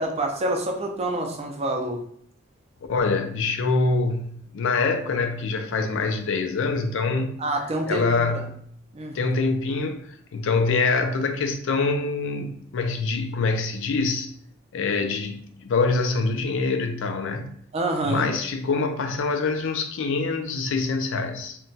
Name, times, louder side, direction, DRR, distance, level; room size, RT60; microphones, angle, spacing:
voice 1, 0.0-2.0 7.4-8.5 8.9-9.3 17.7-18.3, right 2 dB, 30° right, 0.5 m, -27 dB
voice 2, 2.9-7.4 7.9-8.6 9.1-14.3 14.7-17.5 18.0-21.6, left 3 dB, 65° left, 0.4 m, -25 dB
2.2 x 2.2 x 3.9 m
head